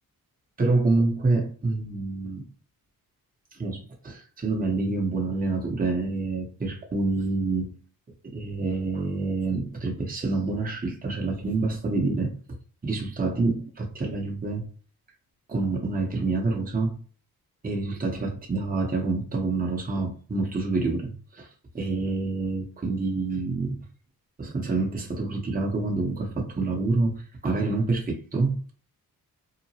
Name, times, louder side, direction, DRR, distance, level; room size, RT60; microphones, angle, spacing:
voice 1, 0.6-2.5 3.5-7.8 8.2-12.4 12.8-14.6 15.5-17.0 17.6-21.5 21.7-23.8 24.4-28.7, right 3 dB, 25° right, 0.9 m, -27 dB
2.9 x 2.1 x 2.7 m
cardioid pair, 65°, 38 cm